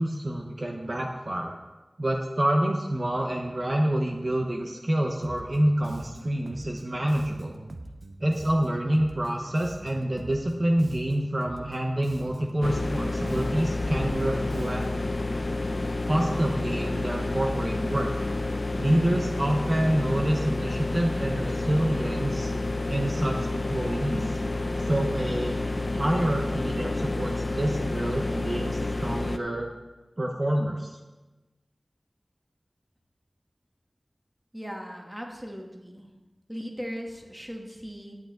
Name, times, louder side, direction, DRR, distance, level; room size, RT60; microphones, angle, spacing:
voice 1, 0.0-1.6 2.0-7.5 8.2-14.8 16.1-18.1 18.8-22.5 22.9-24.2 24.9-29.7 30.2-30.9, right 1 dB, 45° right, 1 dB, 1.0 m, -27 dB
Bass guitar, 5.2-15.1, right 2 dB, 85° right, 0.8 m, -43 dB
sound 1, 12.6-29.4, left 2 dB, 50° left, 0.6 m, -29 dB
voice 2, 34.5-36.1 36.5-38.1, equal, 10° right, 1 dB, 1.7 m, -38 dB
11.0 x 9.2 x 3.9 m, 1.2 s
wide cardioid pair, 50°, 0 cm